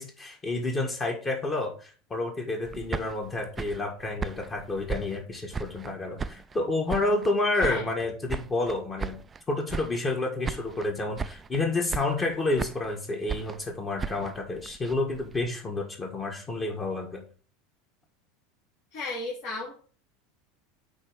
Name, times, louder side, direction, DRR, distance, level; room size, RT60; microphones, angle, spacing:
voice 1, 0.0-9.2 9.5-17.2, left 2 dB, 25° left, 1 dB, 1.7 m, -29 dB
sound 1, 2.6-5.9 6.2-7.3 7.6-9.4 9.7-10.2 10.4-10.9 11.2-11.6 11.9-12.9 13.3-15.5, right 5 dB, 20° right, 0.4 m, -36 dB
voice 2, 7.5-7.8 18.9-19.8, left 2 dB, 55° left, -5 dB, 3.5 m, -34 dB
8.4 x 3.1 x 5.2 m, 0.40 s
hypercardioid pair, 100°, 0 cm